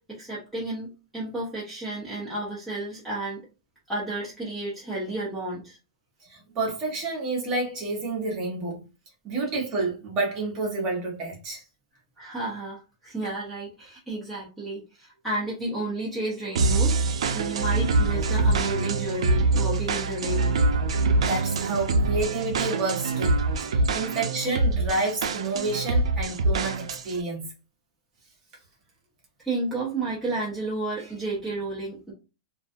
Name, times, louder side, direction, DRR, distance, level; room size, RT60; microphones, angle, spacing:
voice 1, 0.0-3.5 3.9-5.8 12.2-17.0 17.3-20.6 24.0-24.2 29.4-32.1, right 2 dB, ahead, 0.5 m, -32 dB
voice 2, 6.3-8.8 9.2-11.6 21.2-27.5, right 3 dB, 20° right, 0.8 m, -29 dB
sound 1, 16.6-27.2, right 3 dB, 80° right, 0.4 m, -24 dB
2.3 x 2.3 x 2.5 m
supercardioid pair, 180°, 3 cm